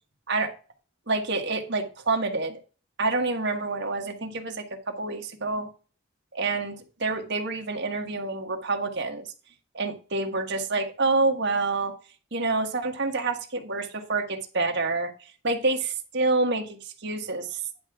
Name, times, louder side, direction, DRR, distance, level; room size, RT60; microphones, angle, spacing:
voice 1, 1.1-2.6 3.0-4.6 5.0-5.7 6.3-6.7 7.0-9.3 9.7-11.9 12.3-15.1 15.4-17.6, right 3 dB, 60° right, 3 dB, 1.4 m, -27 dB
10.5 x 3.6 x 6.0 m, 0.36 s
head